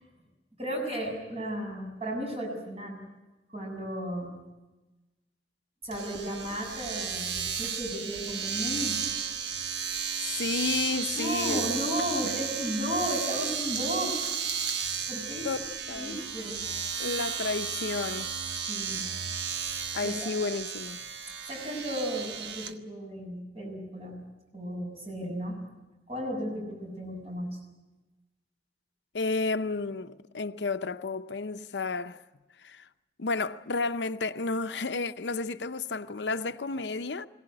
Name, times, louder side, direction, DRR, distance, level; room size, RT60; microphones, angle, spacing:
voice 1, 0.6-3.0 3.5-4.3 5.8-9.0 11.2-14.2 15.1-15.5 15.9-16.6 18.7-19.1 20.0-20.3 21.5-24.2 24.5-25.6 26.1-27.6, equal, 35° right, 7.1 m, -34 dB
Domestic sounds home sounds, 5.9-22.7, right 6 dB, 80° right, 1.3 m, -33 dB
voice 2, 10.2-11.7 12.2-12.3 15.4-15.6 15.9-16.2 17.0-18.3 19.9-21.0 29.1-32.2 32.6-32.8 33.2-37.3, left 3 dB, 85° left, 0.7 m, -32 dB
22.0 x 17.5 x 9.8 m
head